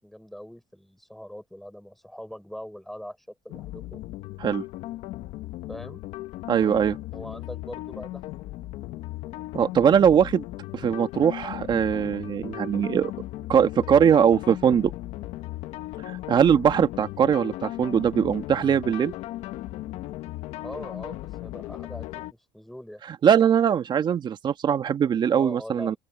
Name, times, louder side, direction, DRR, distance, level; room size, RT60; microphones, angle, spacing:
voice 1, 0.0-4.0 5.7-6.0 7.1-8.3 20.6-23.0 25.3-26.0, equal, ahead, 5.6 m, -41 dB
sound 1, 3.5-22.3, left 16 dB, 70° left, 1.3 m, -37 dB
voice 2, 6.5-7.0 9.5-10.4 10.7-13.1 13.5-14.9 16.1-19.1 23.2-25.9, right 8 dB, 40° right, 1.9 m, -21 dB
open air
cardioid pair, 110°, 12 cm